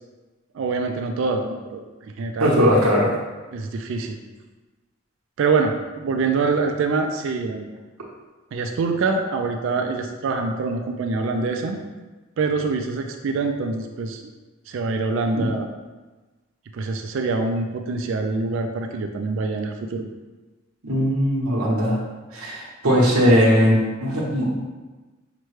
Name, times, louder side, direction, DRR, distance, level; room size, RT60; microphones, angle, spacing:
voice 1, 0.5-2.7 3.5-4.2 5.4-7.7 8.5-11.8 12.4-14.2 14.7-15.7 16.7-20.0, right 4 dB, 65° right, 4 dB, 0.3 m, -25 dB
voice 2, 2.4-3.1 20.8-22.0 22.3-24.6, equal, 85° right, -4 dB, 1.1 m, -19 dB
5.9 x 2.2 x 3.1 m, 1.2 s
head